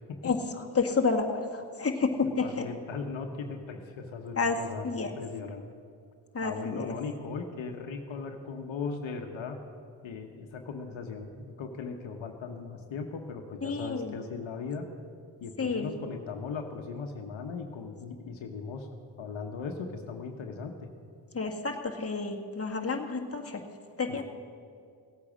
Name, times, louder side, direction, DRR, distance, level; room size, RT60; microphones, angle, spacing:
voice 1, 0.2-2.7 4.4-4.6 4.8-5.1 6.3-7.0 13.6-14.1 15.6-15.9 21.3-23.6 24.0-24.2, left 4 dB, 30° left, 2 dB, 1.7 m, -30 dB
voice 2, 2.4-4.8 5.2-5.6 6.4-9.6 10.0-14.8 15.4-18.9 19.2-20.9, left 5 dB, 70° left, 4 dB, 1.2 m, -38 dB
16.5 x 8.5 x 6.3 m, 2.3 s
supercardioid pair, 55°, 48 cm